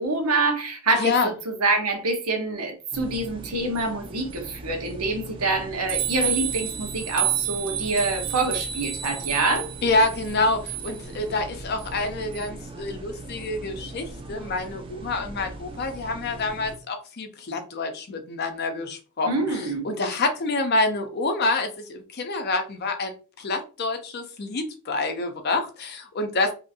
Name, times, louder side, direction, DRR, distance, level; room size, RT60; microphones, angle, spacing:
voice 1, 0.0-9.7 19.2-19.9, right 3 dB, 85° right, 0.9 m, -26 dB
voice 2, 1.0-1.3 9.8-26.5, left 3 dB, 45° left, 0.5 m, -27 dB
sound 1, 2.9-16.8, right 7 dB, 25° right, 0.4 m, -33 dB
2.7 x 2.5 x 2.6 m
head